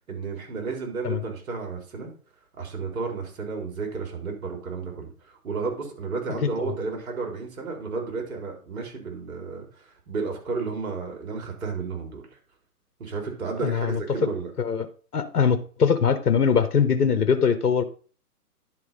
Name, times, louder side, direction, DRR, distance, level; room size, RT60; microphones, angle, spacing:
voice 1, 0.1-2.1 2.6-9.7 10.1-12.2 13.0-14.5, right 4 dB, 60° right, 2 dB, 3.9 m, -32 dB
voice 2, 13.6-14.3 14.6-14.9 15.1-17.8, left 6 dB, 65° left, 9 dB, 1.5 m, -22 dB
10.5 x 4.7 x 5.6 m, 0.41 s
figure-of-eight pair, 135°, 47 cm